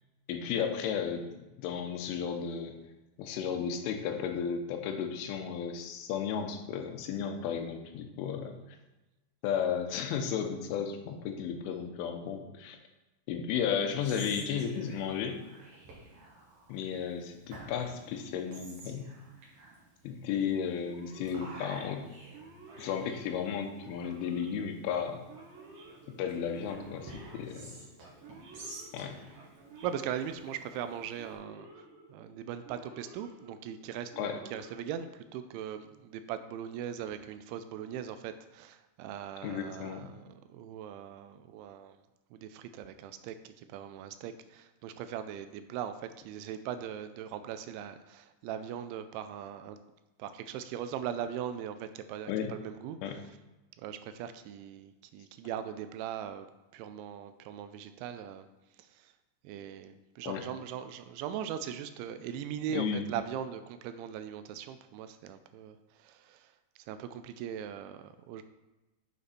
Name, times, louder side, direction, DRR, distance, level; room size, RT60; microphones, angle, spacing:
voice 1, 0.3-1.3 1.6-2.7 3.2-8.5 9.4-12.8 13.3-15.4 16.7-19.1 20.1-22.1 22.8-25.2 26.1-27.8 28.9-29.2 34.2-34.4 39.4-40.1 52.3-52.5 53.0-53.2 60.3-60.4 62.7-63.1, left 7 dB, 90° left, 5 dB, 3.4 m, -34 dB
Whispering, 13.8-31.3, right 2 dB, 50° right, 3.1 m, -52 dB
Male speech man speaking / Siren, 20.8-35.6, right 3 dB, 65° right, 3.5 m, -53 dB
voice 2, 29.8-42.0 42.3-49.8 50.2-53.4 53.8-56.5 56.7-58.5 58.8-59.1 59.4-68.4, right 9 dB, 85° right, 10 dB, 2.8 m, -40 dB
9.6 x 6.5 x 4.2 m, 1.1 s
omnidirectional pair, 5.4 m